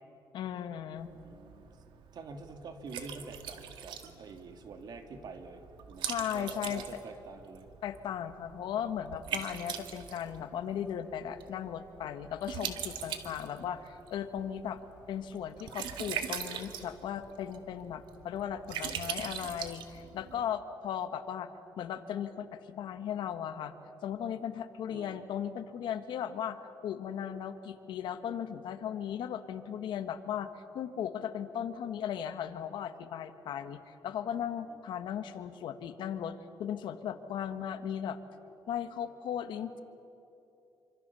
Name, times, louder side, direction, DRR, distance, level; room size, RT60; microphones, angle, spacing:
voice 1, 0.3-1.1 6.0-6.8 7.8-14.8 15.1-21.5 21.8-23.7 24.0-30.5 30.7-38.2 38.7-39.8, left 9 dB, 80° left, 9 dB, 1.5 m, -37 dB
Liquid, 1.0-20.4, right 8 dB, 90° right, 2.0 m, -42 dB
voice 2, 1.1-1.7 2.1-7.7 24.9-25.2, right 4 dB, 60° right, 6 dB, 2.6 m, -47 dB
27.0 x 25.5 x 7.0 m, 2.9 s
cardioid pair, 120°, 8 cm